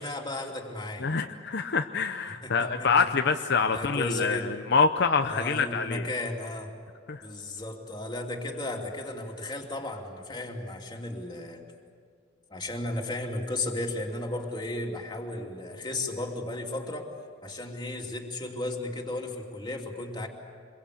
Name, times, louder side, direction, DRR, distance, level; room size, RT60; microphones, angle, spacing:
voice 1, 0.0-1.1 2.4-3.1 3.7-4.5 5.3-6.7 7.2-11.6 12.5-17.1 17.4-20.3, left 2 dB, 25° left, 1 dB, 2.8 m, -34 dB
voice 2, 1.0-6.1 7.1-7.2, left 5 dB, 60° left, 7 dB, 0.7 m, -26 dB
26.0 x 22.5 x 8.5 m, 2.1 s
head